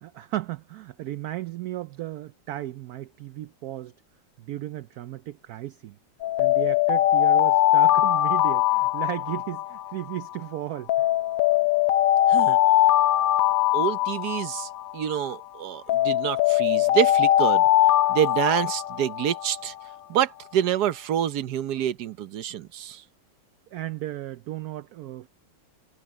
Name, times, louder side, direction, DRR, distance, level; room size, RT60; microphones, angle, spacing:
voice 1, 0.0-3.9 4.4-6.0 6.4-10.9 23.7-25.3, right 14 dB, 85° right, 0.8 m, -35 dB
Alarm, 6.2-10.4 10.9-15.4 15.9-19.7, left 13 dB, 85° left, 0.7 m, -21 dB
voice 2, 13.7-17.7 18.1-19.7 20.1-23.0, right 10 dB, 65° right, 1.2 m, -27 dB
omnidirectional pair, 2.1 m